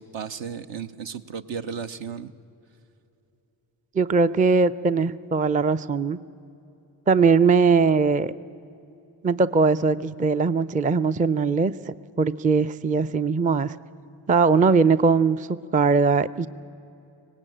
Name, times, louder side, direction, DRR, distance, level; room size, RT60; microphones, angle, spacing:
voice 1, 0.0-2.3, right 6 dB, 65° right, 9 dB, 1.0 m, -34 dB
voice 2, 3.9-6.2 7.1-8.3 9.2-13.8 14.3-16.5, right 4 dB, 15° right, 15 dB, 0.5 m, -20 dB
18.0 x 18.0 x 8.9 m, 2.8 s
supercardioid pair, 45°, 50 cm